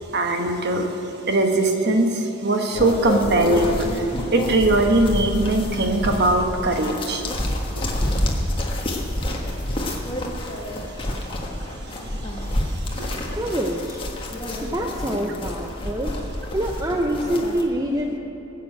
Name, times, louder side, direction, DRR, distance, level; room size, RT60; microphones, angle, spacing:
voice 1, 0.1-0.9 1.3-3.9 4.3-7.2 14.5-14.6, right 2 dB, 50° right, 4 dB, 1.3 m, -20 dB
sound 1, 2.7-17.6, left 1 dB, 25° left, 1.5 m, -28 dB
voice 2, 13.3-14.0 14.6-16.1 16.5-18.2, equal, 15° right, 1 dB, 0.7 m, -25 dB
19.5 x 7.1 x 8.9 m, 2.9 s
head